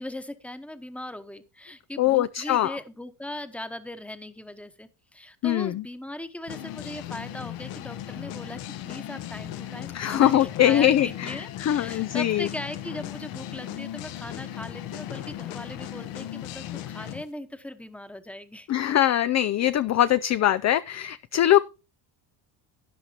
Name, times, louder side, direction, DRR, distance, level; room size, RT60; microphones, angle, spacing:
voice 1, 0.0-18.7, left 1 dB, 5° left, 1.1 m, -39 dB
voice 2, 2.0-2.8 5.4-5.8 9.9-12.5 18.7-21.6, left 12 dB, 35° left, 0.4 m, -22 dB
sound 1, 6.5-17.2, left 12 dB, 80° left, 1.4 m, -37 dB
13.0 x 9.7 x 2.9 m
cardioid pair, 105°, 49 cm